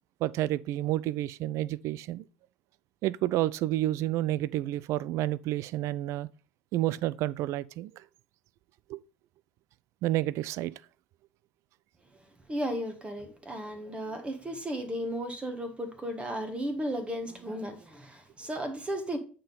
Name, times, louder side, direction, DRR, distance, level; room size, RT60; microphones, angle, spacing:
voice 1, 0.2-2.2 3.0-6.3 6.7-7.9 8.9-9.0 10.0-10.7, right 15 dB, 50° right, 0.3 m, -30 dB
voice 2, 12.5-19.2, equal, 15° right, 1.4 m, -34 dB
8.7 x 3.8 x 5.1 m
hypercardioid pair, 70°, 6 cm